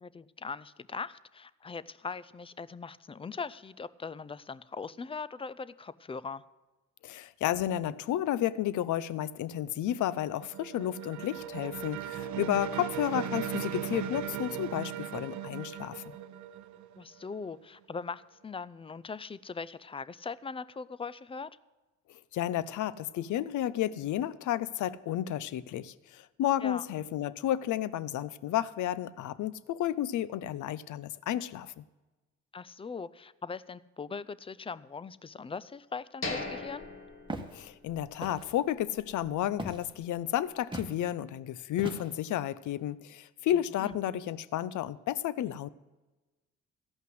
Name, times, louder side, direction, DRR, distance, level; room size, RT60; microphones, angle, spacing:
voice 1, 0.0-6.4 12.7-12.8 17.0-21.5 26.6-26.8 32.5-36.9 43.8-44.0, left 5 dB, 20° left, 18 dB, 0.4 m, -40 dB
voice 2, 7.0-16.2 22.3-31.8 37.5-45.7, left 12 dB, 65° left, 18 dB, 0.6 m, -32 dB
sound 1, 9.8-17.6, right 10 dB, 65° right, 0.7 m, -38 dB
sound 2, 36.2-38.2 38.5-38.6 39.1-39.3, left 2 dB, 40° left, 1.9 m, -39 dB
Walk footsteps, 37.3-37.6 38.2-38.6 39.6-39.9 40.7-41.0 41.8-42.3, right 2 dB, 15° right, 1.2 m, -39 dB
14.0 x 5.6 x 7.8 m, 1.1 s
cardioid pair, 85°, 32 cm